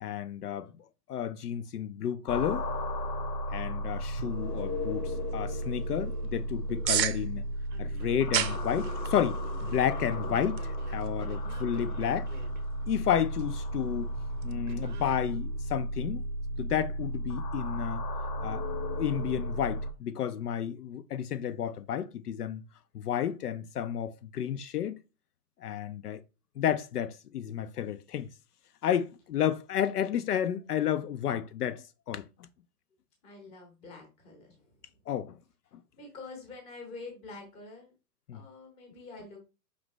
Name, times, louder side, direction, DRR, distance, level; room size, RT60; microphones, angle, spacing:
voice 1, 0.0-0.7 1.1-2.7 3.5-7.5 7.8-10.6 10.9-12.3 12.9-14.1 14.4-16.2 16.6-18.0 18.4-22.6 22.9-25.0 25.6-26.2 26.6-28.3 28.8-32.2 35.1-35.3 38.3-38.4, left 9 dB, 70° left, 0.5 m, -31 dB
sound 1, 2.3-19.9, equal, 85° left, 1.2 m, -34 dB
sound 2, 4.0-14.5, right 10 dB, 90° right, 0.7 m, -38 dB
Telephone, 4.2-7.0 7.7-8.3 8.9-12.6 14.7-15.2, right 5 dB, 30° right, 0.6 m, -49 dB
voice 2, 33.2-34.8 36.0-37.9 38.3-39.5, left 3 dB, 10° left, 0.8 m, -46 dB
5.2 x 3.1 x 3.1 m
hypercardioid pair, 160°, 49 cm